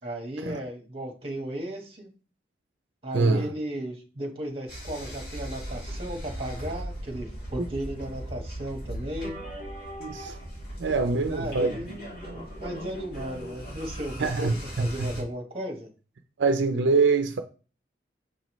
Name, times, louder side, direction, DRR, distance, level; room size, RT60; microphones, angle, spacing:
voice 1, 0.0-2.1 3.0-9.4 11.2-15.9, right 1 dB, 30° right, 1.4 m, -35 dB
voice 2, 3.1-3.5 10.0-10.4 10.8-11.7 14.2-15.1 16.4-17.4, right 4 dB, 80° right, 0.5 m, -24 dB
sound 1, 4.7-15.2, equal, 50° left, 3.0 m, -38 dB
6.7 x 5.3 x 3.1 m
head